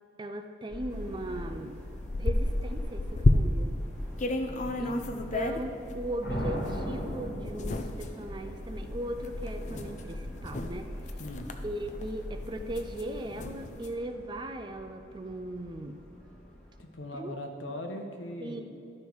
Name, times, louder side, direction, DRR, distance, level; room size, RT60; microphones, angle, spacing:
voice 1, 0.2-1.8 2.2-3.8 4.8-5.1 5.3-10.9 11.6-16.0 17.1-17.4 18.4-18.6, right 1 dB, 25° right, 7 dB, 0.4 m, -38 dB
Subway metro underground, 0.7-16.8, left 1 dB, 5° left, 1.5 m, -42 dB
sound 1, 1.2-1.3 1.6-3.8 4.2-6.0 6.7-6.8 7.4-14.0, left 2 dB, 35° left, 0.5 m, -31 dB
voice 2, 4.4-5.5 11.2-11.5 16.8-18.6, left 1 dB, 75° left, 4 dB, 1.0 m, -41 dB
sound 2, 6.2-8.5, equal, 55° left, 1.5 m, -35 dB
12.5 x 5.4 x 4.6 m, 2.5 s
head